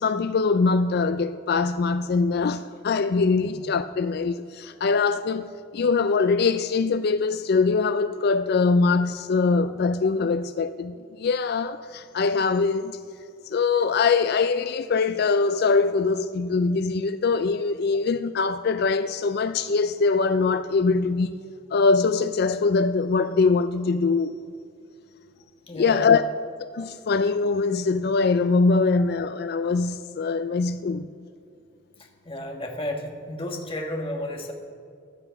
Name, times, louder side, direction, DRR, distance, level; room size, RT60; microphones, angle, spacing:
voice 1, 0.0-13.0 13.4-21.4 21.7-24.4 25.7-26.2 26.7-31.1, left 4 dB, 50° left, 0.4 m, -23 dB
voice 2, 25.7-26.1 32.2-34.5, left 1 dB, 25° left, 1.6 m, -32 dB
16.0 x 11.0 x 5.8 m
head